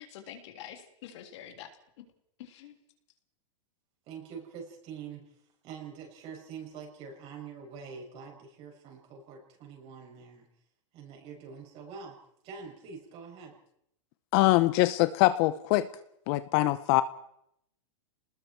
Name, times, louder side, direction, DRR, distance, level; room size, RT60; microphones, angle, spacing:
voice 1, 0.0-1.7 2.4-2.8, left 10 dB, 65° left, 4 dB, 3.4 m, -46 dB
voice 2, 4.1-5.3 5.6-10.5 10.9-12.2 12.4-13.6, right 6 dB, 40° right, 1 dB, 7.3 m, -45 dB
voice 3, 14.3-15.9 16.3-17.0, left 17 dB, 45° left, 13 dB, 0.8 m, -23 dB
28.5 x 20.0 x 4.7 m, 0.73 s
supercardioid pair, 140°, 16 cm